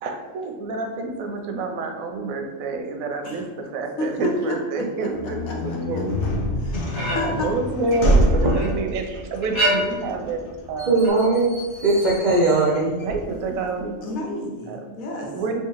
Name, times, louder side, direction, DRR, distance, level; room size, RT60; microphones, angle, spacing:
voice 1, 0.0-6.1 6.9-11.0 13.0-14.0 14.7-14.9 15.3-15.6, right 3 dB, 90° right, 4 dB, 1.0 m, -28 dB
voice 2, 4.0-4.3 4.8-5.1 5.5-5.8 6.6-7.5 14.0-15.3, left 1 dB, 85° left, -1 dB, 1.2 m, -31 dB
sound 1, 5.1-13.8, equal, 55° left, 0.7 m, -26 dB
sound 2, 6.7-7.5 7.9-8.8 9.4-10.2 11.0-11.1, equal, 15° left, 0.7 m, -26 dB
voice 3, 10.9-13.0, right 3 dB, 55° right, -4 dB, 0.5 m, -19 dB
3.5 x 3.0 x 2.9 m, 1.2 s
omnidirectional pair, 1.4 m